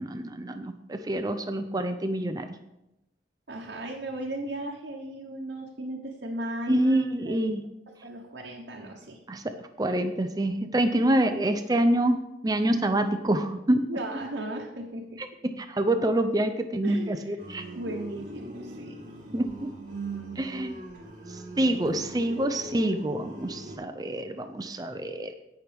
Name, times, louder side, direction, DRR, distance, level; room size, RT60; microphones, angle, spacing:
voice 1, 0.0-2.5 6.7-7.6 9.3-13.9 15.2-17.6 19.3-19.7 20.4-20.8 21.3-25.3, right 1 dB, 20° right, 8 dB, 0.5 m, -27 dB
voice 2, 3.5-7.0 7.4-7.5 7.9-9.2 13.9-15.2 16.8-17.2 17.7-19.0, right 1 dB, 75° right, -1 dB, 1.2 m, -36 dB
sound 1, 17.4-23.8, right 2 dB, 50° right, 2.3 m, -41 dB
16.5 x 5.9 x 3.5 m, 0.90 s
head